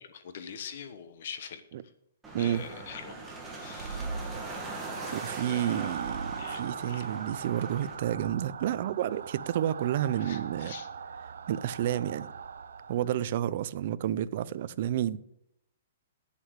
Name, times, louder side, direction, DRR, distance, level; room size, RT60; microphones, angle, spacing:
voice 1, 0.1-1.6 2.4-3.1 3.6-4.1 5.5-5.9 6.4-7.1 10.2-10.9, left 7 dB, 45° left, 1.1 m, -43 dB
sound 1, 2.2-7.9, right 2 dB, 5° right, 1.7 m, -42 dB
sound 2, 3.3-13.3, right 6 dB, 80° right, 0.7 m, -40 dB
voice 2, 5.1-10.7 11.5-12.3 12.9-15.2, right 11 dB, 40° right, 0.4 m, -30 dB
8.4 x 8.1 x 8.0 m
hypercardioid pair, 175°, 0 cm